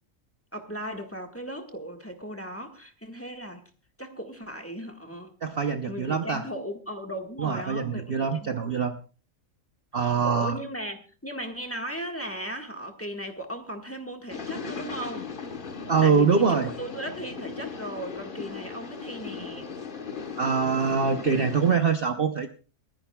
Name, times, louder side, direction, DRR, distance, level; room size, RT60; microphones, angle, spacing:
voice 1, 0.5-3.6 4.0-5.3 5.9-8.8 9.9-15.3 16.0-19.7, equal, 10° left, 1.4 m, -37 dB
voice 2, 5.4-6.4 7.4-8.9 9.9-10.6 15.9-16.7 20.4-22.5, right 5 dB, 50° right, 0.9 m, -24 dB
sound 1, 14.3-21.8, left 5 dB, 40° left, 1.2 m, -37 dB
29.5 x 10.5 x 2.3 m
omnidirectional pair, 1.5 m